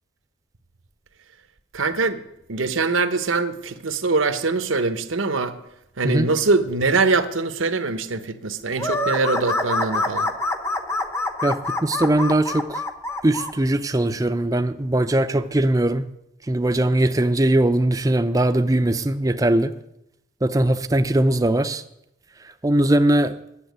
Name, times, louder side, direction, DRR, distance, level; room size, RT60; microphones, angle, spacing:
voice 1, 1.7-2.2 2.5-5.6 6.0-10.3, right 3 dB, 80° right, 10 dB, 0.9 m, -23 dB
sound 1, 8.8-13.5, left 2 dB, 15° left, 0.7 m, -25 dB
voice 2, 11.4-12.8 13.2-16.1 16.5-19.7 20.4-21.8 22.6-23.3, right 1 dB, 15° right, 9 dB, 0.5 m, -20 dB
10.0 x 7.1 x 9.4 m, 0.82 s
head